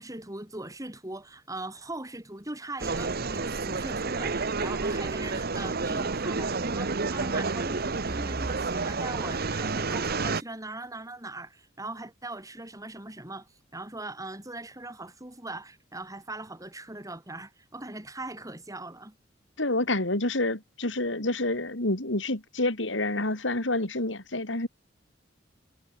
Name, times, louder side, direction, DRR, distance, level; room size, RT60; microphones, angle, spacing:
voice 1, 0.0-19.2, right 2 dB, 20° right, 5.3 m, -40 dB
sound 1, 2.8-10.4, right 4 dB, 55° right, 1.2 m, -30 dB
voice 2, 19.6-24.7, left 2 dB, 75° left, 4.0 m, -28 dB
head